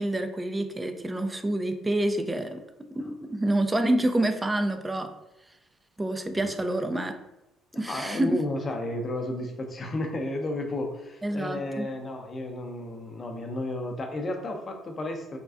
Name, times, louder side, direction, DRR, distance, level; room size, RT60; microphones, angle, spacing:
voice 1, 0.0-2.6 2.9-5.1 6.0-7.2 7.8-8.4 11.2-11.9, right 1 dB, 20° right, 7 dB, 0.4 m, -27 dB
voice 2, 7.8-15.4, left 1 dB, 40° left, 4 dB, 0.6 m, -32 dB
3.5 x 2.3 x 2.5 m, 0.92 s
hypercardioid pair, 55°, 0 cm